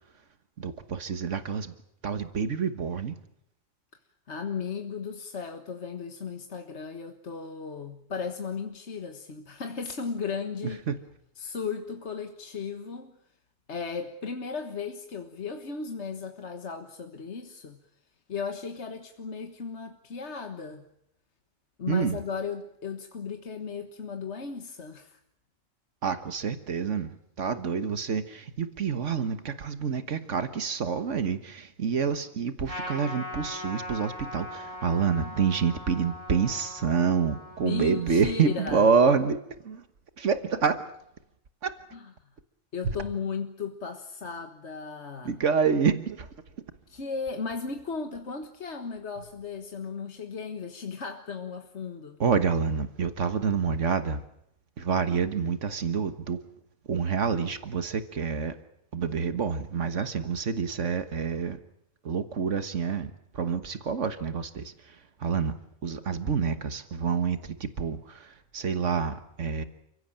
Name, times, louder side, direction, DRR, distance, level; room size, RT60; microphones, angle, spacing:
voice 1, 0.6-1.7 2.0-3.1 10.9-11.0 21.9-22.2 26.0-27.1 27.4-39.4 39.6-39.8 40.2-40.8 41.6-41.7 45.2-46.3 52.2-54.2 54.8-56.4 56.9-58.5 58.9-61.6 62.0-65.5 65.8-69.6, right 6 dB, 80° right, 10 dB, 1.7 m, -27 dB
voice 2, 4.3-10.9 11.4-13.2 13.7-17.8 18.3-20.9 21.8-25.2 35.2-35.4 37.6-38.9 41.9-42.1 42.7-45.4 46.9-52.2, left 5 dB, 70° left, 6 dB, 1.8 m, -36 dB
Trumpet, 32.7-39.4, left 1 dB, 50° left, 6.6 m, -41 dB
29.5 x 16.0 x 8.8 m, 0.77 s
omnidirectional pair, 1.2 m